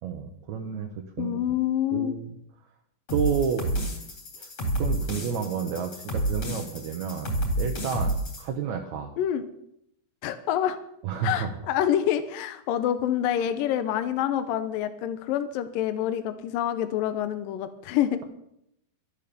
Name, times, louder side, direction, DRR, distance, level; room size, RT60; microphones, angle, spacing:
voice 1, 0.0-1.4 1.9-2.3 3.1-3.9 4.3-4.5 4.8-9.1 11.0-11.6, right 7 dB, 65° right, 4 dB, 2.1 m, -31 dB
voice 2, 1.2-2.2 9.2-9.5 10.2-10.8 11.2-18.2, left 10 dB, 75° left, 10 dB, 2.5 m, -27 dB
sound 1, 3.1-8.4, right 1 dB, 45° left, 4.4 m, -29 dB
13.0 x 11.0 x 6.9 m, 0.76 s
omnidirectional pair, 4.2 m